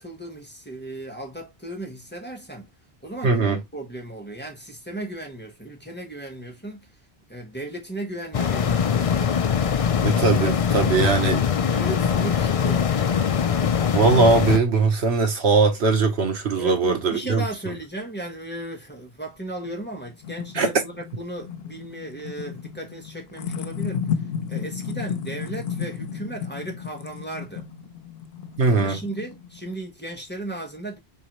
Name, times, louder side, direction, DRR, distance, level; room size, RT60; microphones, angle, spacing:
voice 1, 0.0-2.7 3.0-6.9 7.3-9.3 10.3-10.4 10.8-13.2 16.6-24.1 24.5-27.7 28.7-31.0, right 1 dB, 10° left, 1.2 m, -36 dB
voice 2, 3.2-3.6 10.0-11.4 13.9-17.4 20.5-20.7 28.6-29.0, right 4 dB, 90° right, 1.4 m, -20 dB
sound 1, 8.3-14.6, left 7 dB, 45° left, 0.4 m, -22 dB
sound 2, 19.6-29.7, left 7 dB, 70° left, 0.8 m, -33 dB
3.9 x 3.7 x 3.0 m
omnidirectional pair, 1.1 m